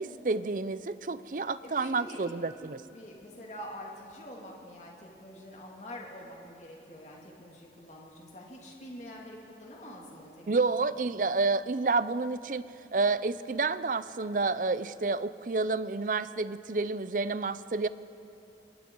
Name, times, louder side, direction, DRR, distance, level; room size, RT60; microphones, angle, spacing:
voice 1, 0.0-2.8 10.5-12.6 12.9-17.9, right 3 dB, 45° right, 15 dB, 0.5 m, -29 dB
voice 2, 1.4-10.4, equal, 40° left, -2 dB, 2.5 m, -46 dB
27.0 x 21.5 x 4.6 m, 2.7 s
head